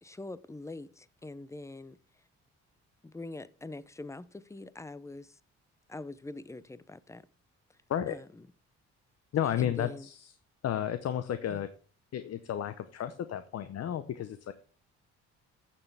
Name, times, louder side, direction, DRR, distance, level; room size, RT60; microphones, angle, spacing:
voice 1, 0.0-2.0 3.0-5.4 5.9-7.2 8.1-8.5 9.6-10.1 11.5-11.6, left 2 dB, 10° left, 0.5 m, -44 dB
voice 2, 9.3-10.2 10.6-11.7 12.1-14.5, left 10 dB, 55° left, 0.7 m, -32 dB
13.0 x 6.8 x 3.4 m
cardioid pair, 90°, 30 cm